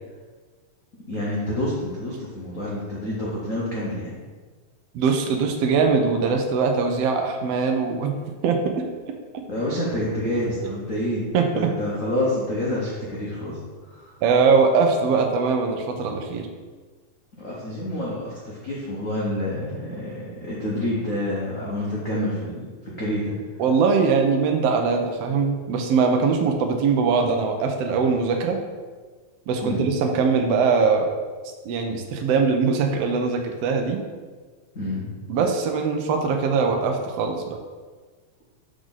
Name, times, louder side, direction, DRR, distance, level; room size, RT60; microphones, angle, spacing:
voice 1, 1.1-4.2 9.5-14.1 17.4-23.3 29.6-29.9 34.7-35.1, left 1 dB, 80° left, -7 dB, 0.7 m, -28 dB
voice 2, 4.9-8.1 8.4-8.8 9.3-9.4 11.3-11.7 14.2-16.5 23.6-28.6 29.5-31.1 31.6-34.0 35.3-37.6, right 5 dB, 80° right, 3 dB, 1.5 m, -21 dB
6.2 x 4.9 x 4.0 m, 1.4 s
omnidirectional pair, 3.4 m